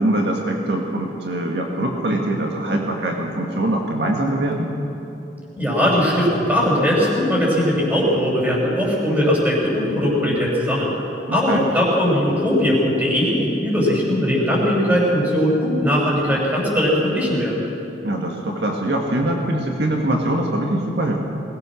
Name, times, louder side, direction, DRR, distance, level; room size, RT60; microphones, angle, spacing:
voice 1, 0.0-4.7 11.3-11.7 18.0-21.2, right 1 dB, 70° right, 0 dB, 1.9 m, -23 dB
voice 2, 5.6-10.9 11.3-17.6, equal, 10° right, -4 dB, 6.7 m, -19 dB
21.5 x 19.0 x 6.4 m, 2.9 s
head